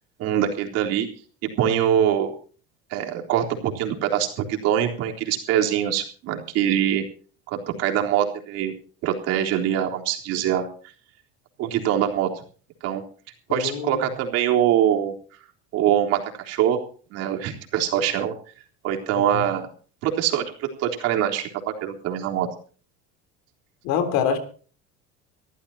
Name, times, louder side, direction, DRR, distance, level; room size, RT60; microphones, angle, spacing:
voice 1, 0.2-1.1 1.6-2.3 2.9-7.0 7.5-8.7 9.0-10.7 11.6-12.3 12.8-13.0 13.5-15.1 15.7-16.8 17.1-18.3 18.8-19.7 20.0-22.5, right 10 dB, 60° right, 2 dB, 3.7 m, -23 dB
voice 2, 13.5-14.1 19.1-19.4 23.8-24.4, left 8 dB, 65° left, 8 dB, 3.6 m, -26 dB
24.5 x 14.0 x 2.8 m, 0.40 s
cardioid pair, 145°, 29 cm